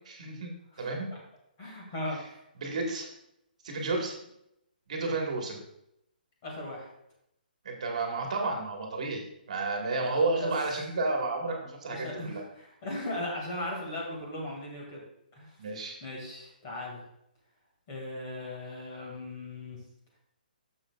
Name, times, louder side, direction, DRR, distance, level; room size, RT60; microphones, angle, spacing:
voice 1, 0.1-0.5 0.8-1.1 2.6-3.1 3.6-4.1 4.9-5.6 7.7-9.2 9.5-12.4 15.6-16.0, right 3 dB, 45° right, 1 dB, 1.7 m, -31 dB
voice 2, 0.7-1.2 1.6-2.4 6.4-6.9 10.0-10.5 11.9-15.0 15.3-15.5 16.0-17.0 17.9-19.8, left 1 dB, 20° left, -2 dB, 2.1 m, -38 dB
10.5 x 6.8 x 2.4 m, 0.78 s
hypercardioid pair, 175°, 5 cm